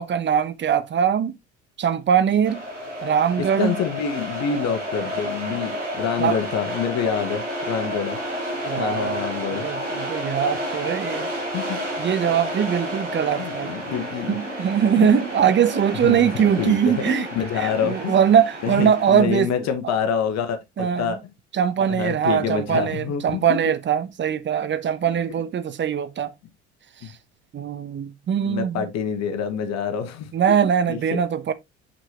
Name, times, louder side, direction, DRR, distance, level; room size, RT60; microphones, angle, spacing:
voice 1, 0.0-1.3 1.8-2.6 3.0-3.8 6.2-6.4 8.7-11.3 12.0-13.7 14.3-17.3 17.5-19.5 19.8-19.9 20.8-21.2 21.5-26.3 27.0-27.1 27.5-28.9 30.3-31.5, right 8 dB, 30° right, 0.9 m, -22 dB
sound 1, 2.4-19.2, equal, 90° right, 1.6 m, -31 dB
voice 2, 3.6-8.2 8.8-9.7 11.5-11.8 13.4-14.4 15.0-15.2 16.0-18.1 18.6-21.2 21.9-23.4 25.0-25.1 27.0-27.1 28.4-30.6 30.9-31.2, left 7 dB, 50° left, 1.4 m, -27 dB
6.9 x 6.0 x 2.9 m
figure-of-eight pair, 55°, 35 cm